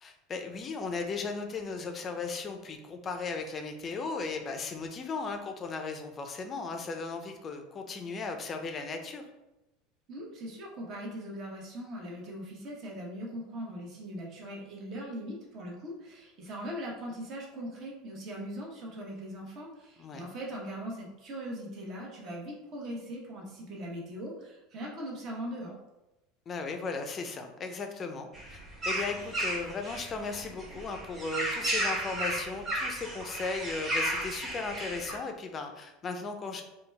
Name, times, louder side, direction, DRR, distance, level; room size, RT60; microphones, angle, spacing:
voice 1, 0.0-9.2 20.0-20.2 26.5-36.6, left 4 dB, 25° left, 5 dB, 0.5 m, -36 dB
voice 2, 10.1-25.8, equal, 45° right, -2 dB, 1.1 m, -40 dB
sound 1, 28.3-35.2, right 1 dB, 20° right, 1.2 m, -34 dB
3.9 x 2.3 x 3.3 m, 0.96 s
supercardioid pair, 135°, 0 cm